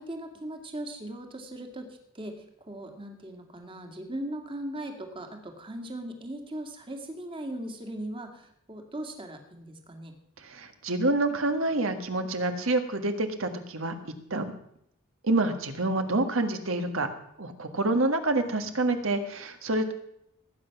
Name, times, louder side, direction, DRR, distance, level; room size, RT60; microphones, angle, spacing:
voice 1, 0.0-10.2, right 1 dB, 25° right, 4 dB, 2.0 m, -39 dB
voice 2, 10.4-14.0 14.3-14.5 15.2-17.1 17.4-19.9, right 2 dB, 65° right, 7 dB, 1.6 m, -27 dB
18.0 x 9.0 x 5.9 m, 0.74 s
head